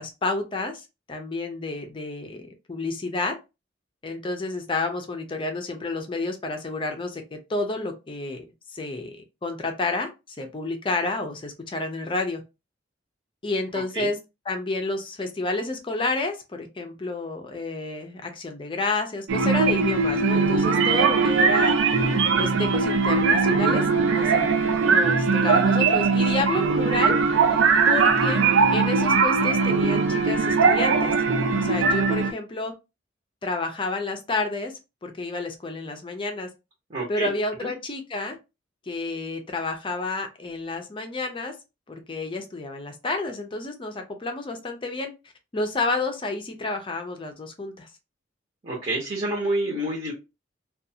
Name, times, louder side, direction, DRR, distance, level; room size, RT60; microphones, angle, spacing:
voice 1, 0.0-3.4 4.0-8.4 8.7-12.4 13.4-14.2 14.5-21.8 22.4-23.8 24.1-27.2 27.9-28.4 28.7-31.1 31.6-32.7 33.4-34.7 35.0-36.5 37.1-38.4 38.9-41.5 41.9-45.1 45.5-47.9, left 3 dB, 25° left, 5 dB, 0.5 m, -30 dB
sound 1, 19.3-32.3, right 4 dB, 85° right, 0.4 m, -20 dB
voice 2, 36.9-37.3 37.6-37.7 48.6-50.1, right 1 dB, 35° right, -4 dB, 0.9 m, -28 dB
2.5 x 2.3 x 2.7 m, 0.26 s
head